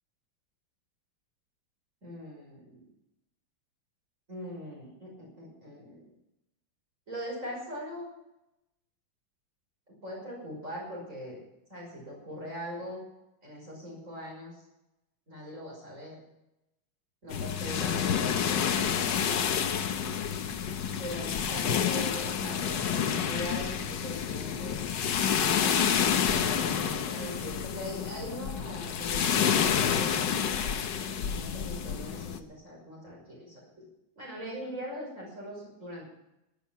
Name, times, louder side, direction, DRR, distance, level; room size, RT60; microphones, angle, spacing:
voice 1, 2.0-2.9 4.3-6.0 7.1-8.1 10.0-11.4 11.7-13.0 13.4-14.5 15.3-16.2 17.2-19.3 21.0-24.8 26.2-30.2 30.6-33.7 34.2-36.0, equal, 35° right, -3 dB, 6.1 m, -41 dB
sound 1, 17.3-32.4, left 8 dB, 65° left, 1.6 m, -29 dB
18.0 x 10.5 x 6.0 m, 0.88 s
omnidirectional pair, 2.3 m